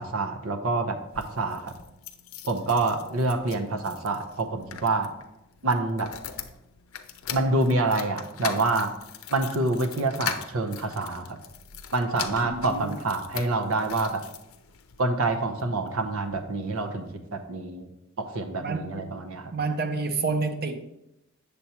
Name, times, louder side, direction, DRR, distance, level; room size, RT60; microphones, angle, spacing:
voice 1, 0.0-1.7 2.4-5.1 5.6-6.1 7.3-8.9 9.3-11.4 11.9-14.2 15.0-17.9 18.2-19.5, right 2 dB, 85° right, 0.8 m, -27 dB
sound 1, 1.0-15.0 15.6-16.5 16.8-16.9 17.1-17.2, left 8 dB, 80° left, 0.6 m, -40 dB
voice 2, 12.4-13.0 18.6-19.1 19.5-20.9, right 3 dB, 50° right, 0.7 m, -29 dB
8.1 x 6.8 x 2.9 m
head